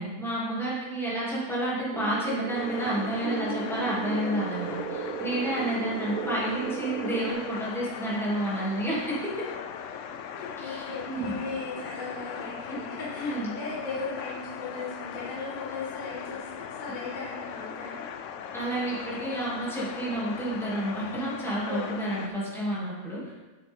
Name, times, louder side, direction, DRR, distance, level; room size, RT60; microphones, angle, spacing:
voice 1, 0.0-9.5 10.6-11.4 13.2-13.5 18.5-23.3, right 1 dB, ahead, -9 dB, 2.6 m, -30 dB
sound 1, 1.9-7.3, right 6 dB, 65° right, 1.0 m, -35 dB
sound 2, 2.5-22.3, left 7 dB, 70° left, 0.7 m, -39 dB
voice 2, 10.4-18.1 21.7-22.6, left 3 dB, 30° left, -7 dB, 1.6 m, -38 dB
7.6 x 7.1 x 3.7 m, 1.2 s
omnidirectional pair, 1.7 m